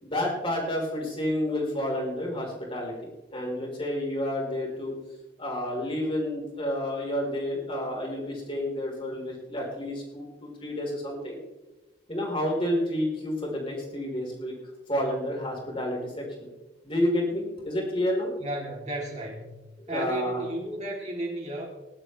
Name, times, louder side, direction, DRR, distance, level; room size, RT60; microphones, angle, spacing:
voice 1, 0.0-4.9 5.4-11.4 12.1-14.5 14.9-16.5 16.8-18.3 19.8-20.4, left 1 dB, 25° left, -2 dB, 4.5 m, -30 dB
voice 2, 18.4-19.5 19.9-21.7, right 1 dB, 35° right, -2 dB, 3.4 m, -33 dB
21.5 x 11.5 x 3.4 m, 1.1 s
head